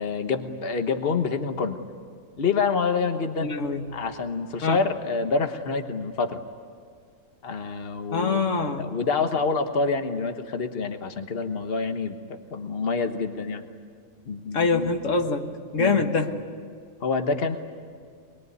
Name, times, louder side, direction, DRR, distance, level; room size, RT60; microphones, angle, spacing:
voice 1, 0.0-1.8 2.4-3.5 3.9-6.4 7.4-8.4 8.8-12.2 12.5-13.6 14.3-15.1 15.8-16.0 17.0-17.6, left 4 dB, 55° left, 7 dB, 1.5 m, -27 dB
voice 2, 3.4-3.8 4.6-4.8 8.1-9.0 14.5-15.5 15.7-16.3, left 4 dB, 90° left, 5 dB, 1.8 m, -24 dB
24.0 x 22.0 x 9.5 m, 2.1 s
omnidirectional pair, 1.3 m